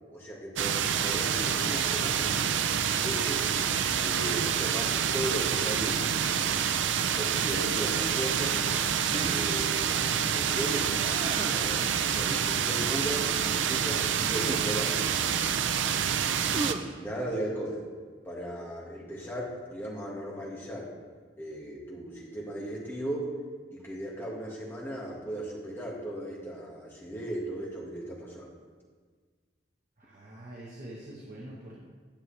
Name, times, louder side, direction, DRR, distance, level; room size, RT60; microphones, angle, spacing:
voice 1, 0.1-2.4 2.9-3.5 4.0-6.3 7.2-8.6 9.3-15.1 16.4-17.8 18.2-20.9 21.4-23.3 23.7-28.5, right 1 dB, 10° left, -5 dB, 1.7 m, -37 dB
sound 1, 0.6-16.7, right 8 dB, 85° right, 0.5 m, -27 dB
sound 2, 6.3-7.2 9.1-9.7 11.0-11.7 14.4-14.8 16.5-17.0, right 3 dB, 30° right, 0.3 m, -38 dB
voice 2, 30.0-31.7, right 1 dB, 45° right, -5 dB, 1.3 m, -44 dB
10.0 x 7.8 x 3.3 m, 1.5 s
head